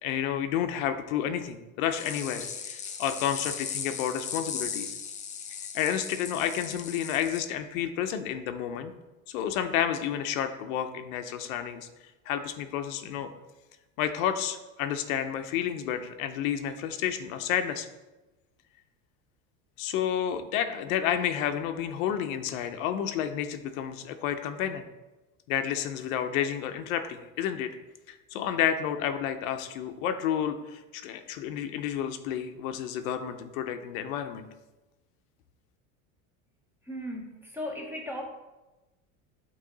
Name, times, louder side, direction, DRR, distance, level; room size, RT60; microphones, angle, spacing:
voice 1, 0.0-4.9 5.7-8.9 9.3-11.9 12.3-13.3 14.0-17.9 19.8-24.8 25.5-27.7 28.1-34.5, left 9 dB, 75° left, 8 dB, 0.7 m, -30 dB
sound 1, 1.9-7.4, left 7 dB, 20° left, 0.4 m, -37 dB
voice 2, 36.8-38.2, left 1 dB, 5° right, 0 dB, 0.9 m, -36 dB
8.4 x 3.1 x 3.9 m, 1.1 s
supercardioid pair, 130°, 42 cm